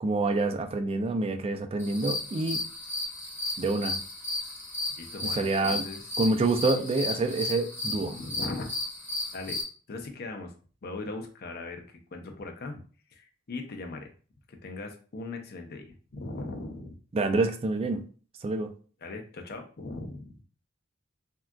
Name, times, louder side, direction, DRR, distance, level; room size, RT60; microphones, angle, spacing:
voice 1, 0.0-2.6 3.6-4.0 5.4-5.9 6.2-8.1 17.1-18.0 18.4-18.7, right 2 dB, 30° right, 7 dB, 0.3 m, -27 dB
sound 1, 1.8-9.6, left 2 dB, 10° left, 0.9 m, -34 dB
voice 2, 5.0-6.1 7.9-8.7 9.3-9.6 9.9-10.5 10.8-11.8 12.1-12.8 13.1-14.1 14.5-16.9 19.0-20.4, left 2 dB, 50° left, 4 dB, 0.5 m, -39 dB
3.6 x 2.3 x 2.2 m, 0.40 s
head